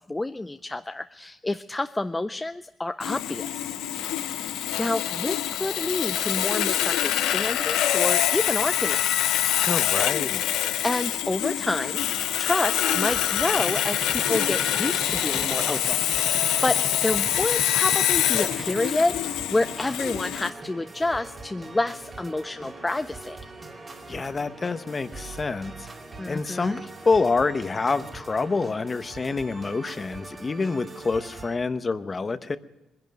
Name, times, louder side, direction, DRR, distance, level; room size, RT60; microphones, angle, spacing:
voice 1, 0.1-3.8 4.4-9.3 10.8-12.0 12.4-23.4 26.2-26.8, left 2 dB, 15° left, 10 dB, 0.5 m, -29 dB
Sawing, 3.0-20.5, left 12 dB, 90° left, 0.6 m, -25 dB
voice 2, 9.7-10.4 24.1-25.9 26.3-32.6, left 4 dB, 30° left, 13 dB, 0.9 m, -27 dB
sound 1, 12.7-31.6, right 2 dB, 30° right, 2.4 m, -42 dB
sound 2, 13.6-18.9, right 6 dB, 50° right, 0.8 m, -37 dB
20.5 x 11.0 x 6.4 m, 1.0 s
cardioid pair, 90°, 0 cm